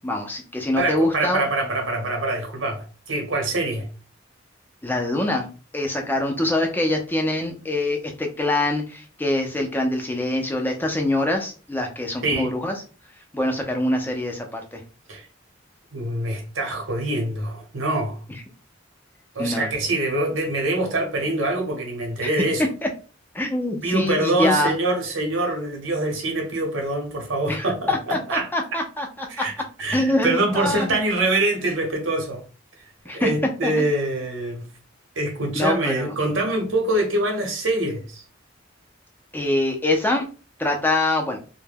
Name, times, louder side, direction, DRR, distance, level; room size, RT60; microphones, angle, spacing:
voice 1, 0.0-1.4 4.8-5.5 5.7-12.7 13.3-14.8 19.4-19.7 22.2-22.5 22.8-22.9 23.3-24.7 27.5-29.5 29.9-30.9 33.1-33.3 33.6-33.7 35.5-36.1 39.3-40.3 40.6-41.4, left 1 dB, 10° left, 0.4 m, -24 dB
voice 2, 0.7-3.9 6.0-6.1 12.2-12.5 15.1-15.2 15.9-18.2 19.3-22.6 23.8-28.5 29.3-29.5 29.8-32.4 33.1-34.6 35.2-38.2, right 2 dB, 90° right, 0.8 m, -24 dB
2.2 x 2.1 x 3.3 m
head